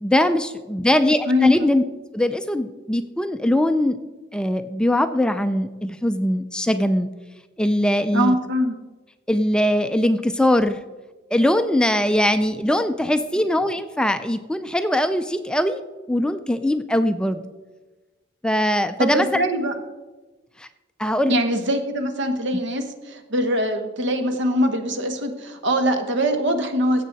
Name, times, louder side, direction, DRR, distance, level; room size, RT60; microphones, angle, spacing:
voice 1, 0.0-1.8 2.1-4.0 4.3-7.1 7.6-8.3 9.3-10.8 11.3-15.8 16.1-17.4 18.4-19.4 20.6-20.7 21.0-21.3, left 1 dB, 5° left, 9 dB, 0.4 m, -21 dB
voice 2, 8.1-8.7 19.0-19.7 21.3-27.0, equal, 65° right, 7 dB, 1.2 m, -22 dB
16.0 x 7.5 x 4.0 m, 1.2 s
head